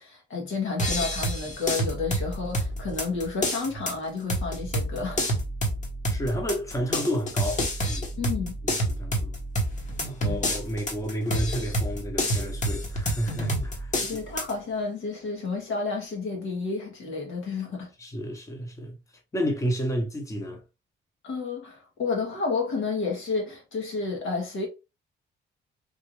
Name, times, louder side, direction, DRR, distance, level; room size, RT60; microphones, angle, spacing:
voice 1, 0.0-5.2 8.2-8.6 10.2-10.4 14.0-17.9 21.2-24.7, left 4 dB, 80° left, 1.5 m, -31 dB
sound 1, 0.8-14.5, equal, 40° left, 1.1 m, -29 dB
voice 2, 6.1-8.1 8.6-9.3 10.0-14.2 18.0-19.0 19.3-20.6, equal, 15° left, 0.9 m, -31 dB
3.4 x 2.5 x 3.0 m
cardioid pair, 90°, 20 cm